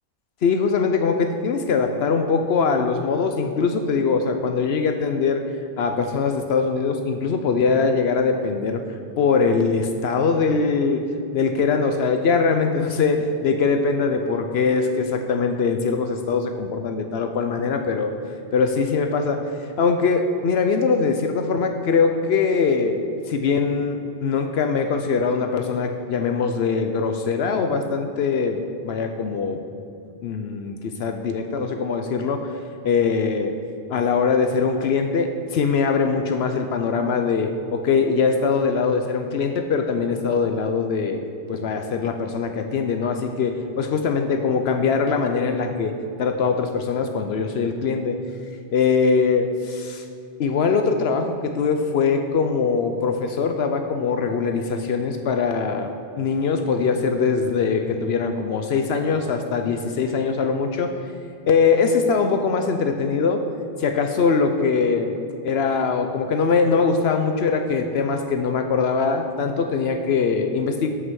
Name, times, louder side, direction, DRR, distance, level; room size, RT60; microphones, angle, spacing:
voice 1, 0.4-5.4 5.8-8.8 9.2-11.0 11.3-18.1 18.5-23.0 23.3-29.6 30.2-32.6 32.8-33.6 33.9-41.2 41.5-45.9 46.2-48.2 48.7-50.1 50.4-61.0 61.5-63.4 63.8-65.1 65.4-70.9, left 5 dB, 75° left, 6 dB, 0.9 m, -22 dB
8.1 x 7.7 x 6.2 m, 2.5 s
omnidirectional pair, 1.1 m